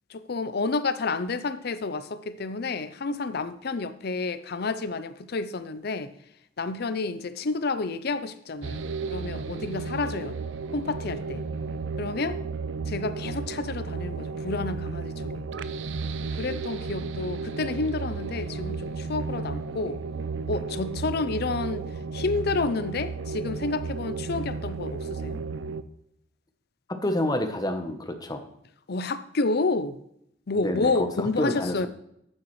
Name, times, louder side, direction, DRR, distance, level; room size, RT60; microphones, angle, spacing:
voice 1, 0.1-6.1 6.6-10.4 10.7-11.4 12.0-12.4 12.9-15.4 16.3-20.0 20.5-21.9 22.1-25.4 28.9-30.0 30.5-31.9, left 3 dB, 55° left, 13 dB, 0.6 m, -30 dB
sound 1, 8.6-25.8, right 4 dB, 70° right, 0.5 m, -33 dB
voice 2, 26.9-28.4 30.6-31.9, left 1 dB, 20° left, 6 dB, 1.0 m, -28 dB
10.5 x 8.8 x 3.2 m, 0.76 s
head